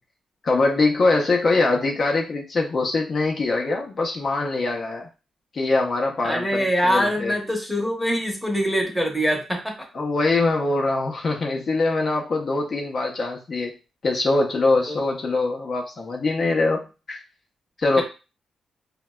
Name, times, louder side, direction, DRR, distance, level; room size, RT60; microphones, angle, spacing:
voice 1, 0.4-5.1 5.5-7.3 9.9-13.7 14.0-17.2 17.8-18.0, left 3 dB, 45° left, 0 dB, 0.5 m, -23 dB
voice 2, 6.2-9.8 14.9-15.0 18.0-18.1, equal, 5° right, 1 dB, 0.9 m, -23 dB
3.9 x 2.1 x 2.2 m, 0.31 s
cardioid pair, 90°, 0 cm